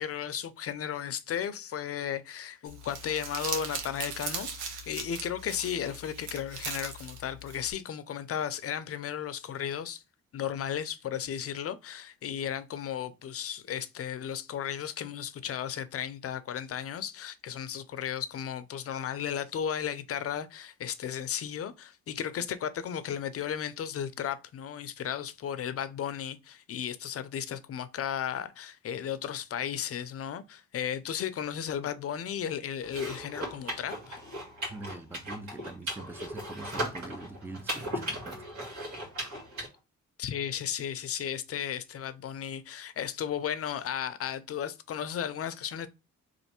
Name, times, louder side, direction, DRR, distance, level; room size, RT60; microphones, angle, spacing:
voice 1, 0.0-10.0 10.3-34.2 40.2-45.9, left 9 dB, 50° left, 0.6 m, -35 dB
Crumpling crinkling, 2.6-7.7, right 5 dB, 90° right, 1.0 m, -39 dB
sound 1, 32.8-39.7, equal, 65° right, 2.0 m, -37 dB
voice 2, 34.7-38.5, right 2 dB, 5° right, 0.6 m, -43 dB
3.2 x 2.5 x 4.3 m
cardioid pair, 90°, 30 cm